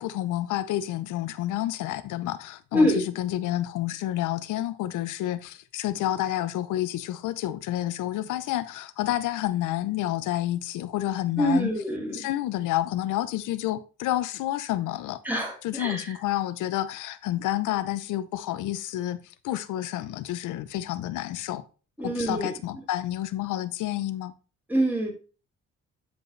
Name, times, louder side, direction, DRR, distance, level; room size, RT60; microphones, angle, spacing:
voice 1, 0.0-2.9 3.2-11.7 12.1-15.2 15.6-21.6 22.0-24.3, left 14 dB, 85° left, 0.7 m, -29 dB
voice 2, 2.7-3.1 11.4-12.3 15.2-16.2 22.0-22.5 24.7-25.1, equal, 5° right, 4.1 m, -25 dB
9.5 x 5.2 x 3.2 m
cardioid pair, 90°, 30 cm